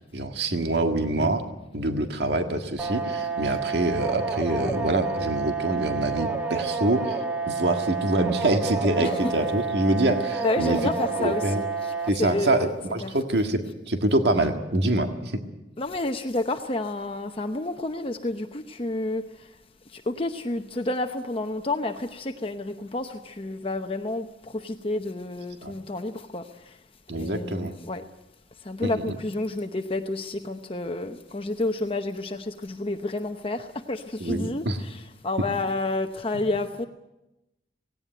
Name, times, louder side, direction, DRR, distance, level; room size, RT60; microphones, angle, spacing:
voice 1, 0.1-1.5 1.7-7.2 7.5-10.8 11.2-11.6 12.1-15.4 25.6-25.7 27.1-27.7 28.8-29.2 34.2-34.8, right 1 dB, 65° right, 1.8 m, -25 dB
sound 1, 2.8-12.1, right 4 dB, 10° right, 1.5 m, -29 dB
voice 2, 10.4-11.9 12.2-12.7 13.0-13.1 15.8-19.5 19.9-26.8 27.2-28.0 28.6-36.9, left 2 dB, 30° left, 0.8 m, -30 dB
18.0 x 17.5 x 9.2 m
head